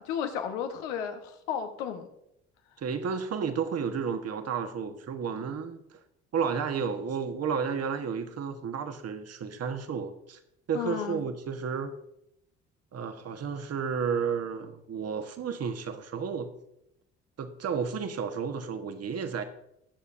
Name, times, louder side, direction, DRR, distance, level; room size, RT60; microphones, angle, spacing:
voice 1, 0.0-2.1 10.7-11.2, left 8 dB, 80° left, 6 dB, 1.1 m, -33 dB
voice 2, 2.8-6.0 6.3-10.4 10.7-11.9 12.9-16.5 17.4-19.4, right 6 dB, 50° right, 7 dB, 1.3 m, -32 dB
20.5 x 6.8 x 2.6 m, 0.80 s
hypercardioid pair, 55°, 33 cm